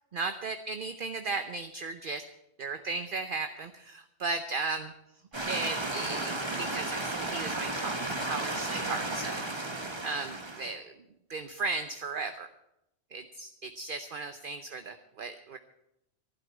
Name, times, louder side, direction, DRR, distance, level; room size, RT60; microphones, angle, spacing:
voice 1, 0.1-2.2 2.6-4.9 5.4-9.4 9.7-10.9 11.3-12.5 13.1-15.6, right 3 dB, 50° right, 9 dB, 0.9 m, -36 dB
sound 1, 5.3-10.7, right 2 dB, 25° right, 1.3 m, -34 dB
11.5 x 11.5 x 8.5 m, 0.84 s
omnidirectional pair, 1.2 m